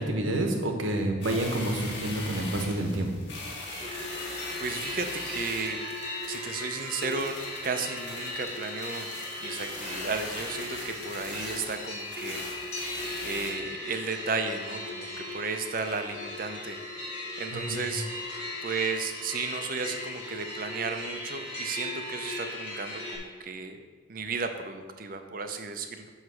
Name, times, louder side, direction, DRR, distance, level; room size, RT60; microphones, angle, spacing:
voice 1, 0.0-3.1 17.5-17.8, right 1 dB, 85° right, 3 dB, 1.1 m, -28 dB
sound 1, 1.2-13.5, left 2 dB, 60° left, 1.7 m, -41 dB
sound 2, 3.8-23.2, left 1 dB, 35° left, 2.4 m, -37 dB
voice 2, 4.6-5.8 6.3-9.1 9.4-12.4 13.2-15.1 15.3-16.8 17.4-18.1 18.6-23.8 24.1-26.1, right 4 dB, 45° right, 7 dB, 0.6 m, -34 dB
9.5 x 3.2 x 6.2 m, 1.4 s
head